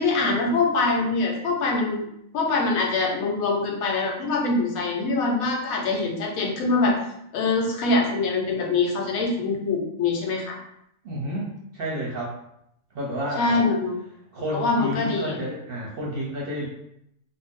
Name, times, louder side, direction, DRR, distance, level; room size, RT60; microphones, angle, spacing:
voice 1, 0.0-2.0 2.3-7.0 7.3-10.6 13.4-13.9 14.5-15.4, left 3 dB, 85° left, 0 dB, 1.1 m, -24 dB
voice 2, 11.0-12.4 12.9-13.6 14.3-16.7, equal, 55° right, -3 dB, 0.7 m, -30 dB
2.6 x 2.1 x 3.5 m, 0.76 s
omnidirectional pair, 1.4 m